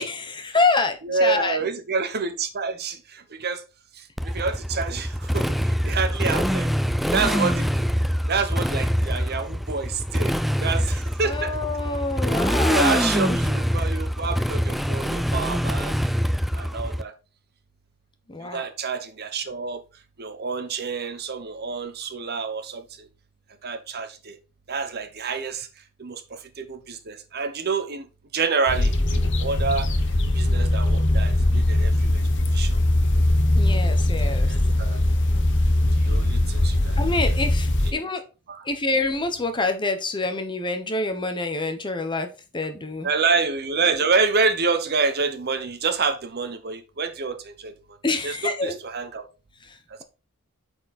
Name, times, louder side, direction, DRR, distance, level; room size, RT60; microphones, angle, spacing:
voice 1, 0.0-1.6 11.2-13.4 18.3-18.6 33.5-34.5 37.0-38.2 38.7-42.3 42.5-43.1 48.0-48.8, left 3 dB, 20° left, 1.0 m, -26 dB
voice 2, 1.0-3.6 4.2-5.5 5.8-6.7 7.1-7.9 8.3-10.3 10.6-11.6 12.7-16.0 16.5-17.1 18.5-19.8 20.2-22.8 23.6-24.4 24.7-25.7 26.0-26.2 26.6-28.0 28.3-29.9 30.3-32.2 32.5-32.8 34.5-35.0 36.0-37.3 37.8-38.0 38.5-38.6 43.0-47.7 48.2-49.3, right 4 dB, 45° right, 1.0 m, -27 dB
Motorcycle, 4.2-17.0, equal, ahead, 0.4 m, -24 dB
sound 1, 28.7-37.9, left 1 dB, 55° left, 1.1 m, -21 dB
8.4 x 4.5 x 4.2 m
head